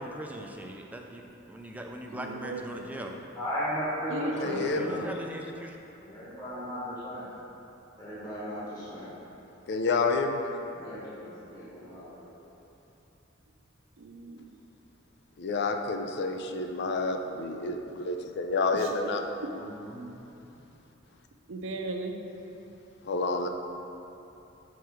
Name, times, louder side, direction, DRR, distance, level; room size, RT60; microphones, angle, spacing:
voice 1, 0.0-3.1 4.7-5.8, right 1 dB, 10° right, 2 dB, 0.4 m, -41 dB
voice 2, 2.1-3.1 4.1-5.4 14.0-14.6 18.7-18.9 19.4-19.5 21.5-22.3, right 2 dB, 70° right, 4 dB, 0.6 m, -37 dB
voice 3, 3.3-5.0 6.0-7.3 8.0-9.1 10.6-12.3 19.5-20.1, equal, 20° left, -11 dB, 1.5 m, -36 dB
voice 4, 4.4-5.0 9.7-10.5 15.4-19.2 23.0-23.5, left 3 dB, 55° left, 5 dB, 0.5 m, -29 dB
6.1 x 4.7 x 4.7 m, 2.9 s
head